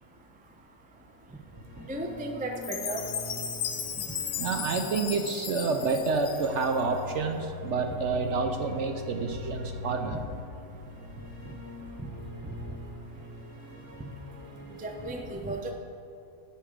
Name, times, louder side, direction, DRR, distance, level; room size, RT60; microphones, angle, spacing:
sound 1, 1.3-15.2, left 3 dB, 40° right, 2.0 m, -43 dB
voice 1, 1.9-3.0 14.8-15.7, right 2 dB, 10° right, 2 dB, 0.4 m, -34 dB
Chime, 2.6-6.8, left 8 dB, 60° left, 0.9 m, -36 dB
voice 2, 4.4-10.2, right 4 dB, 60° right, 5 dB, 0.8 m, -29 dB
13.5 x 5.3 x 5.1 m, 2.5 s
omnidirectional pair, 1.6 m